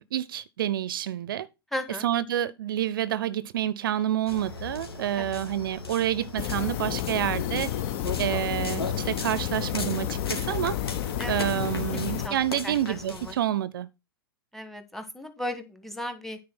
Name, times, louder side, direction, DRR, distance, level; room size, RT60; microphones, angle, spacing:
voice 1, 0.1-1.5 2.0-7.7 8.2-10.8 11.3-13.9, right 11 dB, 65° right, 0.5 m, -28 dB
voice 2, 1.7-2.1 5.1-5.4 11.2-11.5 11.9-12.3 12.6-13.4 14.5-16.4, left 1 dB, ahead, 1.6 m, -36 dB
sound 1, 4.3-13.3, left 3 dB, 80° left, 2.5 m, -38 dB
sound 2, 6.4-12.3, left 11 dB, 45° left, 0.7 m, -31 dB
9.4 x 4.7 x 6.0 m
figure-of-eight pair, 100°, 13 cm